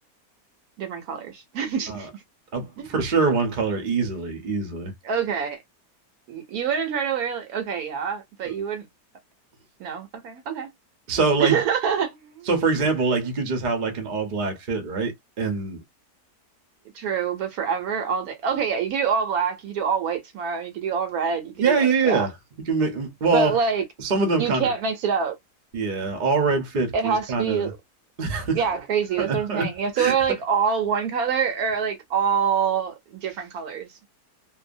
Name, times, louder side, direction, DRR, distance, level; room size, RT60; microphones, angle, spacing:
voice 1, 0.8-2.1 2.8-2.9 5.0-5.6 6.3-8.9 9.8-10.7 11.4-12.5 16.9-22.3 23.3-23.8 24.4-25.4 26.9-27.8 28.5-33.9, right 6 dB, 70° right, 1.0 m, -26 dB
voice 2, 2.5-4.9 8.4-8.5 11.1-11.6 12.5-15.8 21.6-22.3 22.7-23.6 24.0-24.7 25.7-27.7 28.2-28.6 29.2-29.7 30.0-30.1, right 4 dB, 45° right, 0.7 m, -24 dB
2.7 x 2.2 x 2.5 m
omnidirectional pair, 1.8 m